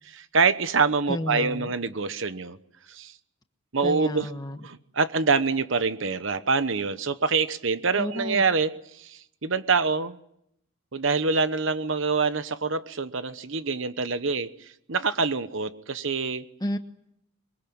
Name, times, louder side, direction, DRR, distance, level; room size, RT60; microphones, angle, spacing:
voice 1, 0.1-2.6 2.9-3.1 3.7-4.3 4.6-10.2 10.9-16.4, right 4 dB, 65° right, 12 dB, 1.0 m, -25 dB
voice 2, 1.1-1.7 3.8-4.6 8.0-8.4 16.6-16.8, left 1 dB, 20° left, 8 dB, 1.3 m, -31 dB
23.5 x 23.0 x 8.7 m, 0.75 s
head